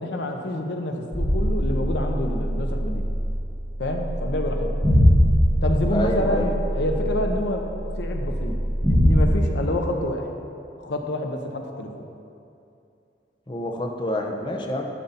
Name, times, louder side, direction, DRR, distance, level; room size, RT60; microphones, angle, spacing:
voice 1, 0.0-3.1 3.8-4.7 5.6-8.6 8.9-10.3 10.8-12.0, left 1 dB, 75° left, 3 dB, 0.8 m, -28 dB
sound 1, 1.1-9.3, equal, 5° right, 2.2 m, -22 dB
voice 2, 5.9-6.5 13.5-14.8, left 1 dB, 25° left, 2 dB, 0.7 m, -27 dB
11.5 x 5.6 x 4.1 m, 2.6 s
head